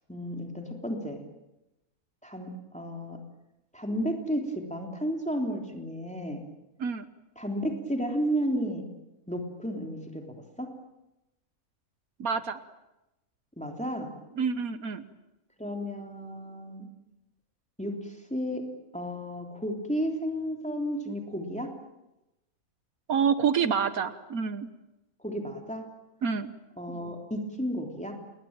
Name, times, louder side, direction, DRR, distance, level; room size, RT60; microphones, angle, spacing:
voice 1, 0.1-1.2 2.2-3.2 3.7-4.4 4.7-6.4 7.4-8.8 9.3-10.2 10.6-10.7 13.6-14.1 15.6-16.9 17.8-18.6 18.9-21.7 25.2-25.8 26.8-28.1, equal, 5° left, 2 dB, 3.4 m, -32 dB
voice 2, 12.2-12.6 14.4-15.0 23.1-24.7 26.2-26.5, right 6 dB, 80° right, 12 dB, 1.6 m, -27 dB
28.5 x 21.0 x 9.0 m, 0.95 s
omnidirectional pair, 1.5 m